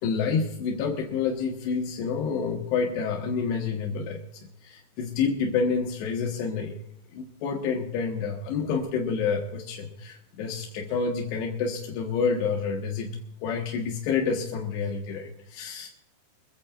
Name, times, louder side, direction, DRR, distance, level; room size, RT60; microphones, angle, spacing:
voice 1, 0.0-4.2 4.6-6.7 7.1-13.2 13.4-15.9, left 5 dB, 90° left, 0 dB, 3.6 m, -28 dB
24.0 x 15.0 x 2.5 m, 0.73 s
omnidirectional pair, 4.6 m